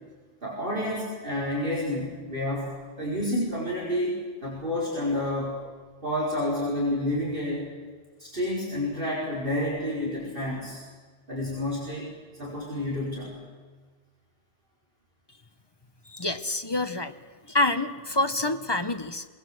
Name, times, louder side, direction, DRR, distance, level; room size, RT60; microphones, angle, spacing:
voice 1, 0.4-5.6 6.0-7.7 8.2-10.8 11.3-12.1 12.4-13.4, left 1 dB, 45° right, -5 dB, 4.7 m, -29 dB
voice 2, 16.1-17.1 17.5-19.2, left 2 dB, 25° left, 9 dB, 0.8 m, -27 dB
22.0 x 20.5 x 7.7 m, 1.4 s
omnidirectional pair, 1.2 m